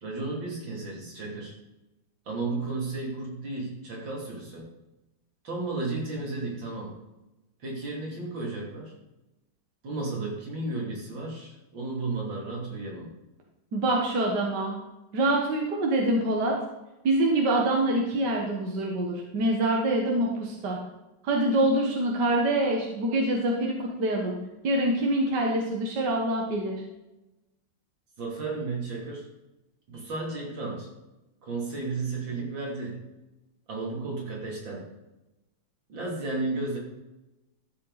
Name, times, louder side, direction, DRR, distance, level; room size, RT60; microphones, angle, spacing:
voice 1, 0.0-1.6 2.3-4.7 5.4-7.0 7.6-8.9 9.8-13.1 28.2-29.3 29.9-30.9 31.4-33.0 33.7-34.9 35.9-36.8, right 3 dB, 85° right, -2 dB, 3.7 m, -33 dB
voice 2, 13.7-14.7 15.1-16.6 17.0-20.8 21.2-24.4 24.6-26.8, right 1 dB, 65° right, 0 dB, 2.0 m, -25 dB
13.0 x 7.5 x 4.1 m, 0.99 s
omnidirectional pair, 2.0 m